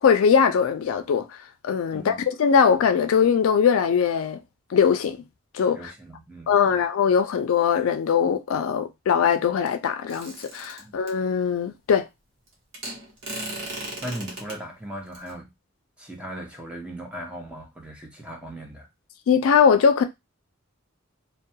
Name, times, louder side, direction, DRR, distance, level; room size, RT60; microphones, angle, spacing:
voice 1, 0.0-1.3 1.6-4.4 4.7-5.2 5.5-5.8 6.5-12.1 19.3-20.0, left 7 dB, 80° left, 0.3 m, -21 dB
voice 2, 1.9-2.2 5.7-6.8 10.8-10.9 14.0-15.5 16.0-18.9, right 1 dB, 5° right, 0.6 m, -38 dB
sound 1, 10.1-11.1 12.7-14.6 15.1-15.3, right 1 dB, 65° right, 1.0 m, -36 dB
2.2 x 2.2 x 2.7 m
head